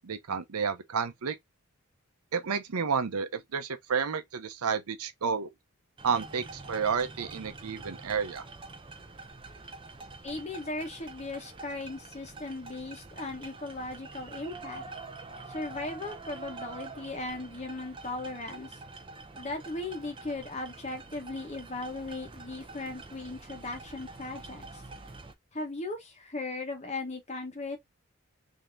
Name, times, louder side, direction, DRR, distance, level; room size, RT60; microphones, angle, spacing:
voice 1, 0.0-1.4 2.3-5.5 6.0-8.4, right 6 dB, 85° right, 0.6 m, -31 dB
sound 1, 6.0-25.3, right 3 dB, 25° right, 0.5 m, -46 dB
voice 2, 10.2-14.8 15.5-18.8 19.3-24.8 25.5-27.8, left 2 dB, 30° left, 1.0 m, -37 dB
3.6 x 2.8 x 3.2 m
head